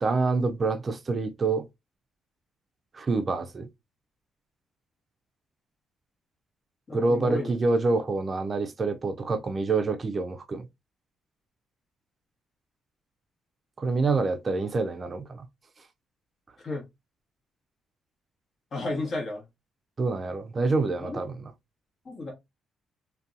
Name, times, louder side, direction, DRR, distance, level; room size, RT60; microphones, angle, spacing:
voice 1, 0.0-1.7 2.9-3.7 6.9-10.7 13.8-15.4 20.0-21.3, right 3 dB, 35° right, 0.4 m, -26 dB
voice 2, 6.9-7.5 16.6-16.8 18.7-19.4 21.0-21.2 22.0-22.3, left 2 dB, 45° left, 1.0 m, -32 dB
2.6 x 2.2 x 2.5 m
cardioid pair, 90°, 0 cm